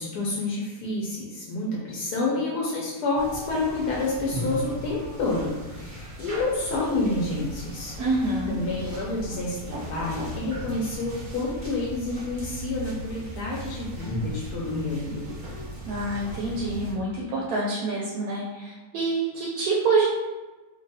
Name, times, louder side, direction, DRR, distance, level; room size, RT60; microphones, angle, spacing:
voice 1, 0.0-7.9 8.5-15.3, left 2 dB, 75° left, -4 dB, 1.1 m, -29 dB
sound 1, 3.2-16.9, equal, 45° right, 0.7 m, -37 dB
voice 2, 8.0-8.6 15.9-20.0, right 3 dB, 70° right, -4 dB, 1.0 m, -26 dB
3.1 x 2.2 x 2.7 m, 1.2 s
omnidirectional pair, 1.7 m